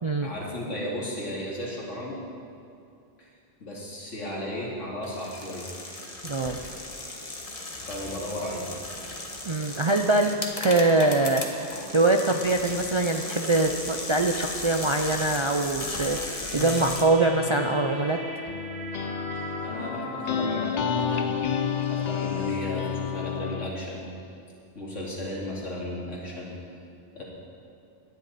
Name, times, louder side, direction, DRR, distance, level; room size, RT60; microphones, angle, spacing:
voice 1, 0.2-2.2 3.2-3.3 3.6-5.7 7.9-8.7 19.6-21.3 21.9-24.1 24.7-26.6 27.1-27.2, left 1 dB, 90° left, -4 dB, 2.8 m, -34 dB
sound 1, 5.0-17.0, left 2 dB, 30° left, 1.3 m, -36 dB
voice 2, 6.2-6.6 9.4-10.3 10.6-18.2, right 2 dB, 45° right, 4 dB, 0.3 m, -23 dB
sound 2, 16.0-22.6, left 1 dB, 70° right, 4.3 m, -38 dB
sound 3, 16.6-23.7, left 8 dB, 50° left, 0.5 m, -31 dB
18.0 x 10.5 x 4.1 m, 2.5 s
omnidirectional pair, 1.2 m